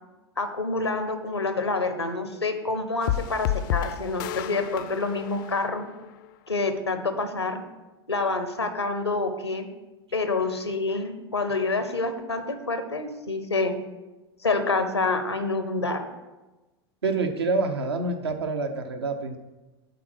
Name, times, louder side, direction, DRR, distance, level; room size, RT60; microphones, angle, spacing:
voice 1, 0.4-5.9 6.5-7.6 8.1-9.7 10.1-13.8 14.4-16.0, left 3 dB, 90° left, 9 dB, 0.8 m, -27 dB
sound 1, 3.0-6.3, left 11 dB, 50° left, 0.4 m, -31 dB
voice 2, 17.0-19.4, right 3 dB, 75° right, 6 dB, 0.8 m, -27 dB
8.3 x 3.9 x 6.2 m, 1.1 s
figure-of-eight pair, 85°, 14 cm